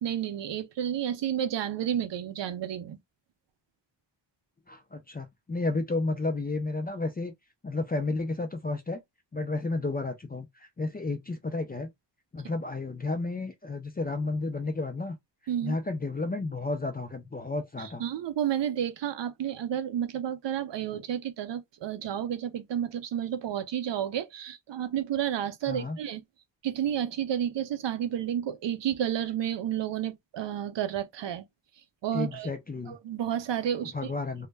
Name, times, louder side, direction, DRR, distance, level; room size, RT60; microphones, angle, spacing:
voice 1, 0.0-3.0 15.5-15.8 17.8-26.2 26.6-31.4 32.0-32.5 32.9-34.1, right 10 dB, 70° right, 0.5 m, -31 dB
voice 2, 4.7-7.3 7.6-9.0 9.3-11.9 12.3-15.1 15.6-18.0 25.7-26.0 32.1-33.0 33.9-34.5, left 3 dB, 25° left, 0.3 m, -32 dB
2.2 x 2.1 x 3.2 m
wide cardioid pair, 135°, 45 cm